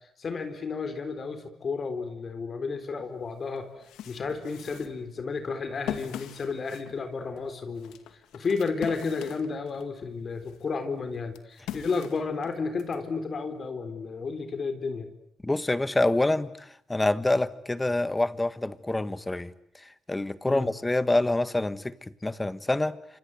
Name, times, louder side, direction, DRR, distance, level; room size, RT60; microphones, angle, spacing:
voice 1, 0.2-3.7 4.1-8.0 8.3-15.1 20.5-20.7, left 4 dB, 45° left, 3.9 m, -32 dB
sound 1, 3.0-3.1 3.6-9.9 10.4-13.0, left 10 dB, 90° left, 2.3 m, -42 dB
voice 2, 15.4-21.9 22.2-23.0, left 2 dB, 15° left, 1.5 m, -26 dB
27.5 x 26.5 x 8.1 m
cardioid pair, 90°, 0 cm